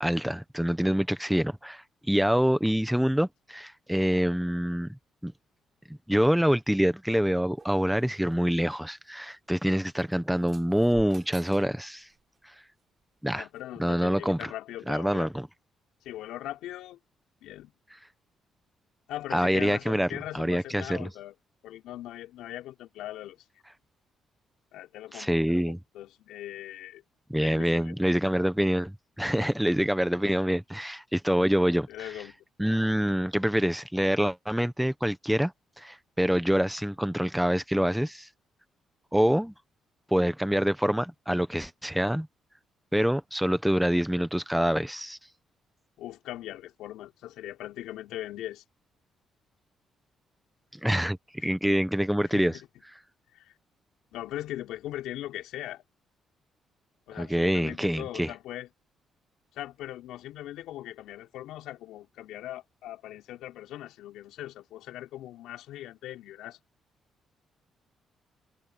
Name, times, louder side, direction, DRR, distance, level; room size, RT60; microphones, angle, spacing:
voice 1, 0.0-5.3 6.1-12.1 12.4-12.5 13.2-13.5 13.8-14.5 14.9-15.5 19.3-20.1 20.3-21.1 25.1-25.8 27.3-31.9 32.6-35.5 35.8-38.3 39.1-39.5 40.1-42.3 42.9-45.2 50.7-51.2 51.4-52.6 57.2-58.3, equal, 5° right, 1.2 m, -26 dB
sound 1, 7.6-8.6 9.5-9.6 10.0-11.8 12.0-12.4 13.2-13.6 14.4-14.5, right 5 dB, 35° right, 7.2 m, -50 dB
voice 2, 13.3-15.3 16.0-17.0 17.4-17.7 19.1-21.3 21.6-23.4 24.7-27.0 27.4-27.9 28.4-28.5 29.4-29.5 31.9-32.4 46.0-48.6 51.4-51.5 52.3-52.7 53.3-53.5 54.1-55.8 57.1-58.7 59.5-66.6, left 14 dB, 90° left, 5.9 m, -40 dB
cardioid pair, 90°, 0 cm